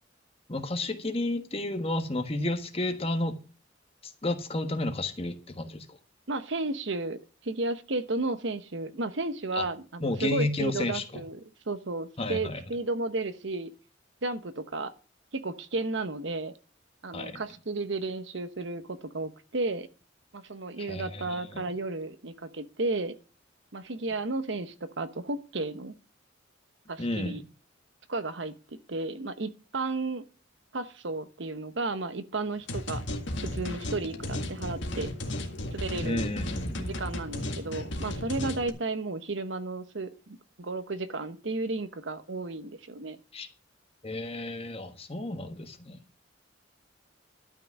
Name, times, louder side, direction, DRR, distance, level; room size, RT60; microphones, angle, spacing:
voice 1, 0.5-3.4 4.2-6.0 9.6-9.7 10.0-11.2 12.2-12.6 17.1-17.4 20.8-21.7 27.0-27.4 36.0-37.0 43.3-43.5 44.0-46.0, left 2 dB, 30° left, 1.3 m, -32 dB
voice 2, 6.3-13.7 14.2-14.9 15.3-16.5 17.0-19.9 20.3-23.1 23.7-25.9 26.9-27.4 28.1-28.5 28.9-30.2 30.7-33.0 33.4-35.1 35.7-36.3 36.8-43.2, right 2 dB, 65° right, 1.0 m, -33 dB
sound 1, 32.7-38.7, left 1 dB, 70° left, 1.9 m, -34 dB
12.5 x 5.9 x 7.0 m
head